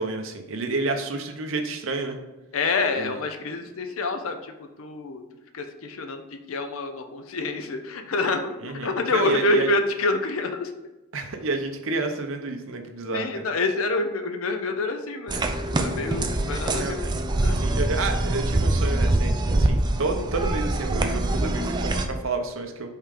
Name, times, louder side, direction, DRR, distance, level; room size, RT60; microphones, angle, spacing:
voice 1, 0.0-2.2 3.0-3.2 8.6-9.7 11.1-13.5 16.7-17.0 17.5-22.9, right 3 dB, 65° right, 5 dB, 0.8 m, -30 dB
voice 2, 2.5-4.5 4.8-5.2 5.5-8.6 8.8-10.7 13.1-15.4 15.8-17.0 17.3-17.7, left 3 dB, 65° left, 6 dB, 0.6 m, -27 dB
sound 1, 15.3-22.1, right 1 dB, 20° right, 0.4 m, -24 dB
5.5 x 3.7 x 4.9 m, 1.0 s
head